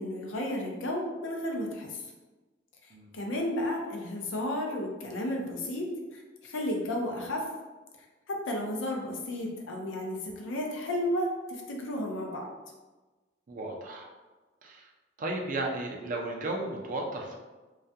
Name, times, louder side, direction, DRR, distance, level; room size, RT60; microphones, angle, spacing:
voice 1, 0.0-2.0 3.1-7.4 8.3-12.5, left 1 dB, 75° left, 1 dB, 0.5 m, -33 dB
voice 2, 2.9-3.2 13.5-14.1 14.6-14.9 15.2-17.4, right 2 dB, 45° right, 1 dB, 0.4 m, -34 dB
2.3 x 2.1 x 2.6 m, 1.2 s
head